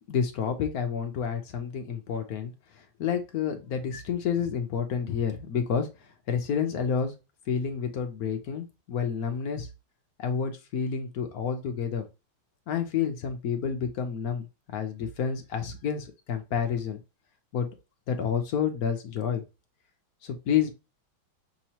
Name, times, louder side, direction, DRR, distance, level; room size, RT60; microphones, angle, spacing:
voice 1, 0.1-2.5 3.0-5.9 6.3-7.1 7.5-9.7 10.2-12.0 12.7-14.5 14.7-17.0 17.5-17.8 18.1-19.4 20.2-20.7, left 7 dB, 65° left, 6 dB, 1.0 m, -29 dB
6.1 x 3.1 x 2.8 m, 0.27 s
omnidirectional pair, 2.2 m